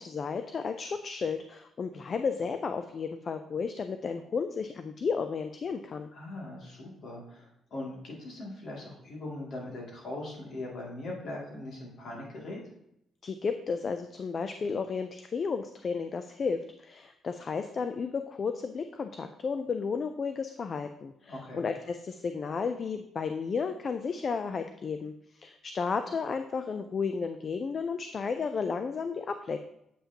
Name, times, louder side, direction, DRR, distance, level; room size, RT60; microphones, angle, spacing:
voice 1, 0.0-6.1 13.2-29.6, left 5 dB, 45° left, 8 dB, 0.4 m, -33 dB
voice 2, 6.1-12.6 21.3-21.7, left 2 dB, 60° left, -3 dB, 2.4 m, -40 dB
8.4 x 5.7 x 2.9 m, 0.79 s
cardioid pair, 90°, 0 cm